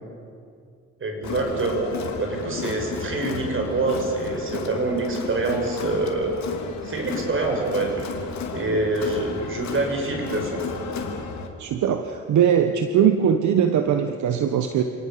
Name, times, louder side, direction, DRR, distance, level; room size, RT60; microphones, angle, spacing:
voice 1, 1.0-1.9 2.2-6.4 6.8-8.1 8.5-10.7, right 2 dB, 45° right, 2 dB, 6.6 m, -26 dB
Crowd, 1.2-11.5, left 4 dB, 65° left, 3.0 m, -33 dB
voice 2, 11.6-14.8, right 8 dB, 70° right, 7 dB, 1.3 m, -21 dB
28.5 x 18.5 x 7.0 m, 2.3 s
cardioid pair, 90°, 30 cm